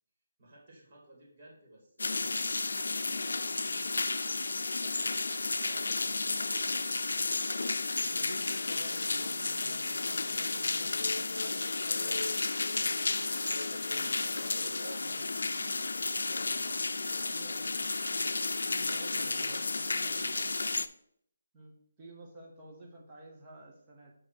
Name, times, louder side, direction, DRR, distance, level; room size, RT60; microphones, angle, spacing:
voice 1, 0.4-4.3 4.6-5.3 5.6-7.5 14.1-18.0 19.2-20.9, right 1 dB, 35° right, -2 dB, 2.1 m, -54 dB
sound 1, 2.0-20.9, left 3 dB, 85° left, 0.4 m, -32 dB
voice 2, 8.1-12.2 12.8-14.4 15.0-15.2 17.2-17.9 18.6-20.3 21.5-24.1, right 1 dB, 15° right, -1 dB, 1.1 m, -52 dB
7.5 x 3.2 x 5.9 m, 0.68 s
hypercardioid pair, 175°, 0 cm